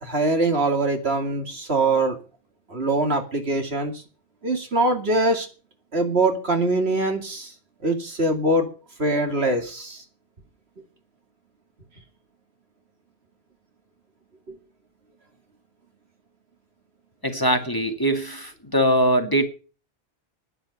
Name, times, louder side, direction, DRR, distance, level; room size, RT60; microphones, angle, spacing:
voice 1, 0.0-2.2 2.7-3.9 4.4-5.5 5.9-7.5 7.8-8.7 9.0-10.0 14.5-14.6, right 2 dB, 70° right, 2.7 m, -23 dB
voice 2, 17.2-19.4, right 1 dB, 20° left, 2.0 m, -22 dB
10.5 x 10.0 x 7.9 m
omnidirectional pair, 1.1 m